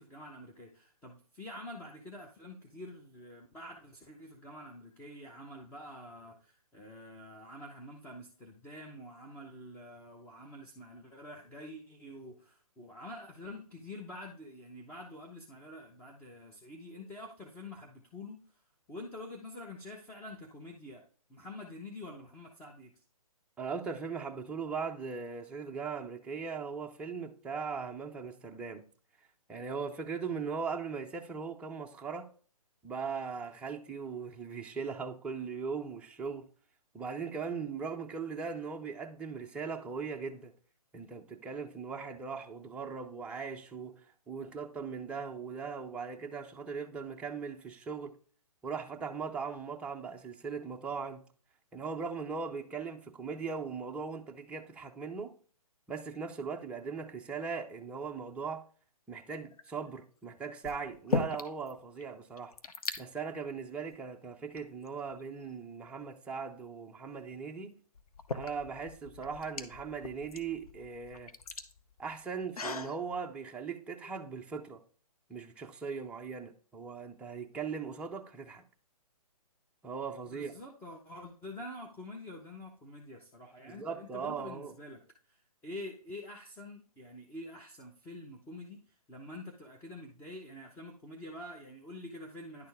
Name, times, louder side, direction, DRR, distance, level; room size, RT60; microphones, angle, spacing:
voice 1, 0.0-18.4 18.9-21.0 21.3-23.0 80.3-85.0 85.3-92.7, left 1 dB, 10° left, 0.9 m, -47 dB
voice 2, 23.6-28.8 29.5-32.3 32.8-36.5 36.9-40.5 40.9-43.9 44.3-48.2 48.6-51.2 51.7-55.3 55.9-58.6 59.1-62.5 63.0-67.8 68.3-71.3 72.0-74.8 75.3-78.6 79.8-80.5 83.6-84.7, right 5 dB, 5° right, 0.5 m, -39 dB
sound 1, 59.4-59.8 60.6-61.7 62.0-62.1 62.3-63.0 63.8-64.0 64.6-65.5 67.2-67.3 67.9-73.0, left 4 dB, 70° left, 1.0 m, -38 dB
10.5 x 4.3 x 3.4 m
hypercardioid pair, 140°, 19 cm